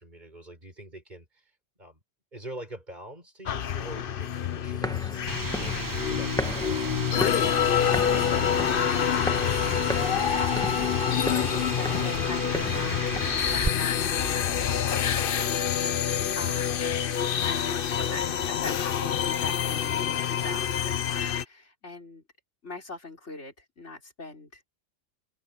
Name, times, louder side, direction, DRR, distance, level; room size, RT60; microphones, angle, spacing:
voice 1, 0.0-1.5 1.8-2.0 2.3-5.7 11.4-11.8, right 1 dB, 40° right, 6.5 m, -46 dB
sound 1, 3.5-21.4, left 9 dB, 55° left, 0.8 m, -27 dB
sound 2, 4.6-13.4, equal, 5° left, 1.4 m, -37 dB
sound 3, 5.3-13.7, right 3 dB, 20° right, 0.7 m, -35 dB
voice 2, 9.6-22.2 22.6-24.6, left 2 dB, 70° left, 4.8 m, -41 dB
open air
omnidirectional pair, 1.2 m